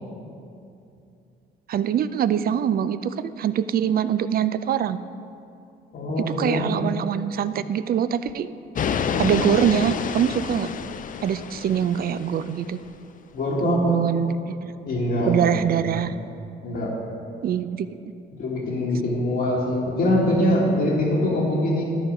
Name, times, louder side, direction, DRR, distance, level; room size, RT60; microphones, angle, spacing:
voice 1, 1.7-5.0 6.3-8.5 9.2-10.7 11.2-12.8 13.6-14.7 15.3-16.1 17.4-17.9, right 9 dB, 50° right, 13 dB, 0.4 m, -23 dB
voice 2, 5.9-6.7 13.3-14.0 14.8-15.6 16.6-16.9 18.4-21.8, left 1 dB, 65° left, -7 dB, 1.5 m, -23 dB
Raumati Beach Ocean Waves, 8.8-12.8, left 7 dB, 45° left, 0.4 m, -28 dB
12.0 x 4.8 x 5.0 m, 2.6 s
cardioid pair, 90°, 20 cm